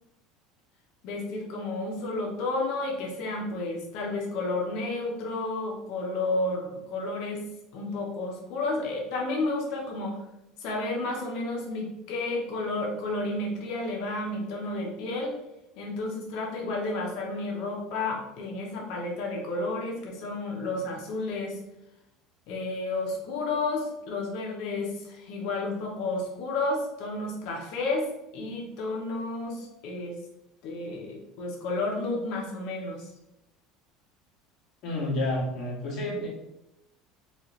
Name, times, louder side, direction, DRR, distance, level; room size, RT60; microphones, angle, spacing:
voice 1, 1.0-7.4 7.7-10.2 10.6-15.4 15.8-21.6 22.5-28.1 28.3-30.2 30.6-33.1, left 2 dB, 55° left, 0 dB, 0.8 m, -31 dB
voice 2, 34.8-36.3, left 1 dB, 40° left, -5 dB, 1.5 m, -29 dB
4.2 x 2.4 x 3.1 m, 0.88 s
cardioid pair, 170°, 0 cm